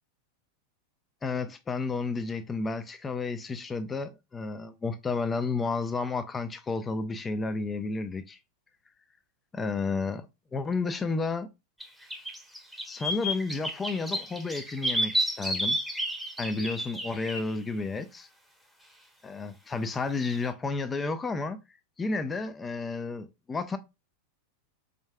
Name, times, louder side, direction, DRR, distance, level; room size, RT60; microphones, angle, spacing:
voice 1, 1.2-8.4 9.5-10.3 10.5-11.5 12.8-15.8 16.4-18.3 19.2-21.6 22.0-23.8, left 4 dB, 20° left, 0.7 m, -31 dB
sound 1, 11.8-11.9 12.1-17.5 20.3-20.5, equal, ahead, 1.2 m, -31 dB
5.2 x 3.1 x 2.3 m
hypercardioid pair, 95°, 0 cm